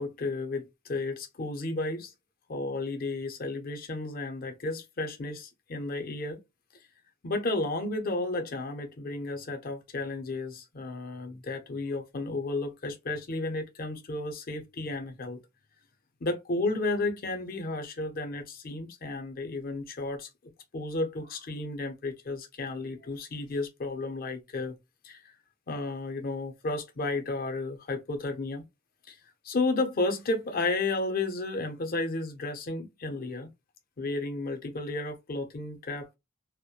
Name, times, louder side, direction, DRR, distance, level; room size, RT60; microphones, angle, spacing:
voice 1, 0.0-2.1 2.5-6.4 7.2-15.4 16.2-20.3 20.7-24.8 25.0-25.2 25.7-28.6 29.1-29.2 29.4-33.5 34.0-36.2, left 2 dB, 50° left, 0.5 m, -32 dB
2.2 x 2.1 x 2.8 m
head